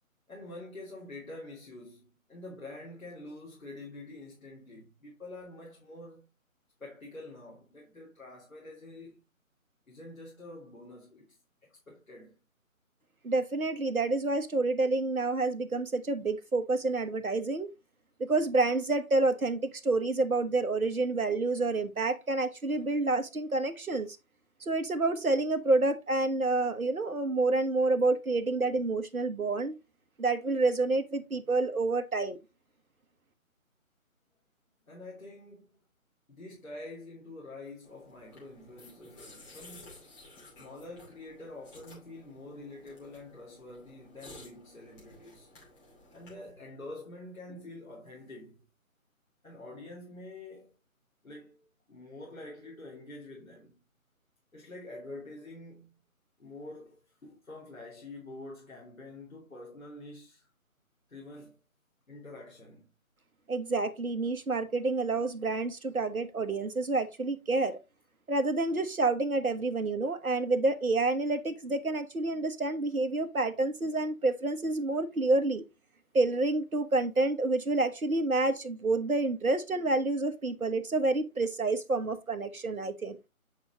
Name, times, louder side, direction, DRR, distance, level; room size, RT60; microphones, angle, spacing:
voice 1, 0.3-6.3 6.8-9.2 9.9-11.4 11.6-12.4 34.9-35.7 36.3-40.0 40.6-45.5 46.1-48.7 49.4-50.7 51.2-53.8 54.5-56.1 56.4-60.5 61.1-61.6 62.1-62.9, left 2 dB, 70° left, 2.8 m, -47 dB
voice 2, 13.2-17.7 18.2-24.2 24.6-29.7 30.2-32.4 63.5-67.8 68.3-75.6 76.1-83.2, right 2 dB, 80° right, 1.3 m, -28 dB
sound 1, 37.8-46.5, left 2 dB, 10° left, 2.6 m, -54 dB
8.7 x 5.0 x 3.0 m
figure-of-eight pair, 150°, 42 cm